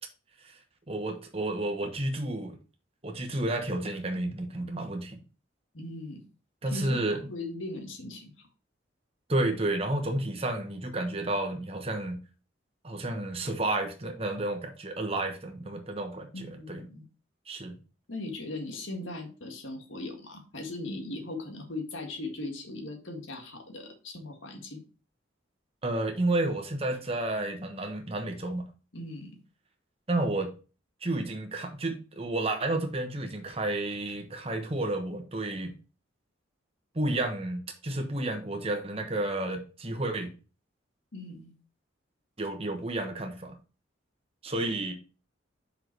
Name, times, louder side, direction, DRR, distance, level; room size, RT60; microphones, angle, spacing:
voice 1, 0.9-2.6 3.0-5.2 6.6-7.2 9.3-12.2 12.8-16.8 17.5-17.8 25.8-28.6 30.1-30.5 31.0-35.7 36.9-40.3 42.4-43.6 44.4-44.9, right 2 dB, 30° right, 1.1 m, -31 dB
voice 2, 5.7-6.2 6.7-8.5 16.3-17.0 18.1-24.8 28.9-29.3 41.1-41.5, left 2 dB, 90° left, 1.8 m, -39 dB
5.7 x 5.2 x 4.6 m
head